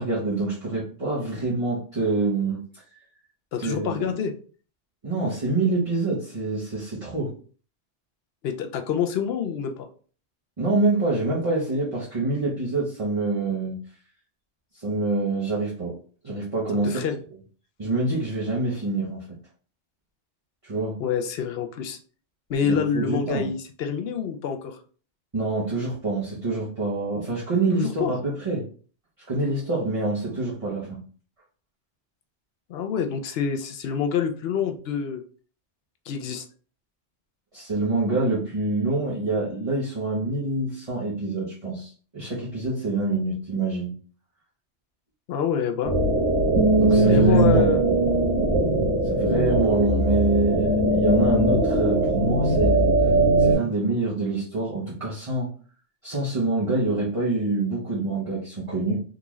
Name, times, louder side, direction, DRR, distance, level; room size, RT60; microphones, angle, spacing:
voice 1, 0.0-2.6 3.6-4.1 5.0-7.3 10.6-13.8 14.8-15.9 16.2-17.1 17.8-19.2 20.6-21.0 22.6-23.5 25.3-28.6 29.3-31.0 37.5-43.9 46.8-47.9 49.0-52.9 53.4-55.5 56.0-59.0, right 3 dB, 30° right, -6 dB, 0.8 m, -26 dB
voice 2, 3.5-4.3 8.4-9.9 16.8-17.2 21.0-22.0 22.5-24.8 27.7-28.2 32.7-35.2 36.1-36.5 45.3-46.0 47.0-47.8, left 7 dB, 65° left, 6 dB, 0.7 m, -27 dB
sound 1, 45.8-53.5, right 1 dB, 90° right, 1.4 m, -20 dB
3.8 x 2.4 x 3.0 m, 0.41 s
omnidirectional pair, 1.2 m